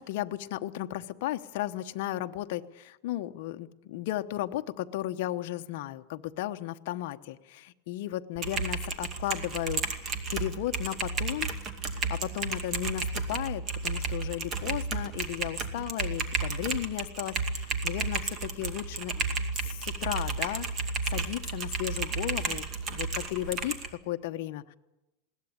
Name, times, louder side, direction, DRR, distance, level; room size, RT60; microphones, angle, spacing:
voice 1, 0.0-11.5 11.9-19.3 19.5-20.7 21.1-22.6 22.9-24.7, left 14 dB, 60° left, 7 dB, 1.1 m, -35 dB
Typing, 8.3-23.9, right 4 dB, 25° right, 2.3 m, -33 dB
21.0 x 17.5 x 8.7 m, 0.97 s
supercardioid pair, 150°, 0 cm